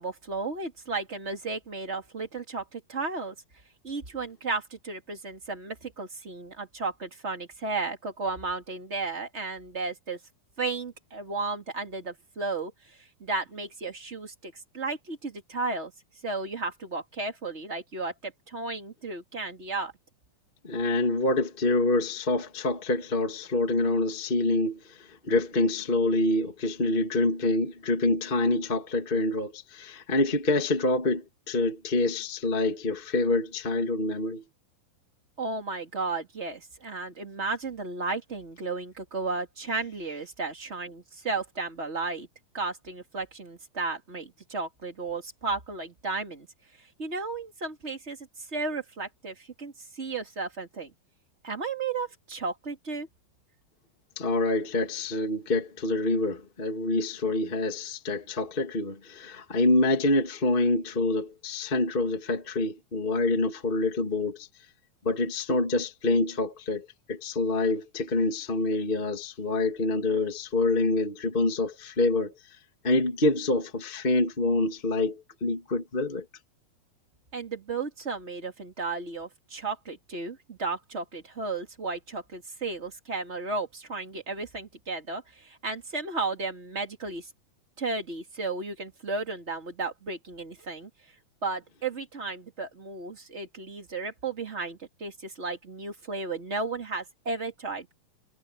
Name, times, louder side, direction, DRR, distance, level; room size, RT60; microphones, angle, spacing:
voice 1, 0.0-3.4 3.8-10.2 10.6-12.7 13.2-15.9 16.2-19.9 35.4-42.3 42.5-46.5 47.0-48.2 48.5-50.9 51.4-53.1 77.3-87.3 87.8-90.9 91.4-97.9, right 3 dB, 20° right, 2.4 m, -34 dB
voice 2, 20.6-34.4 54.2-64.5 65.0-72.3 72.8-76.2, left 2 dB, 20° left, 2.0 m, -26 dB
omnidirectional pair, 4.1 m